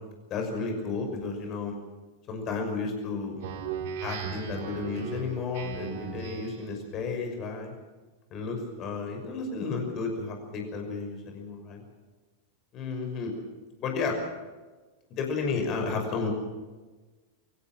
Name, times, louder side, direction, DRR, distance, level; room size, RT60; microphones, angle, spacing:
voice 1, 0.3-1.8 2.3-3.4 4.0-7.7 8.3-11.8 12.7-13.4 13.8-14.2 15.2-16.3, left 4 dB, 35° left, 3 dB, 6.0 m, -32 dB
Speech synthesizer, 3.4-6.7, right 7 dB, 50° right, 2.4 m, -37 dB
24.5 x 16.0 x 7.6 m, 1.3 s
figure-of-eight pair, 90°, 0 cm